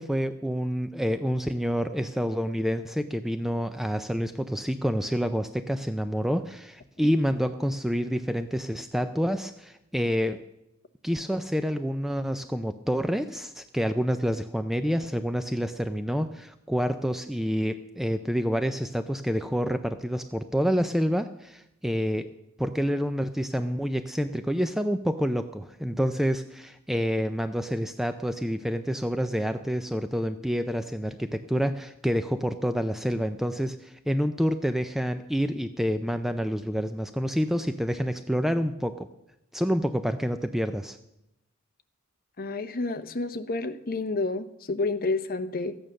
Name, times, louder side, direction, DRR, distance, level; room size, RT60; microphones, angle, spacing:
voice 1, 0.0-10.4 11.0-22.3 22.6-39.1 39.5-41.0, equal, ahead, 9 dB, 0.4 m, -28 dB
voice 2, 42.4-45.8, left 3 dB, 45° left, 9 dB, 0.8 m, -30 dB
13.5 x 9.1 x 6.3 m, 0.85 s
head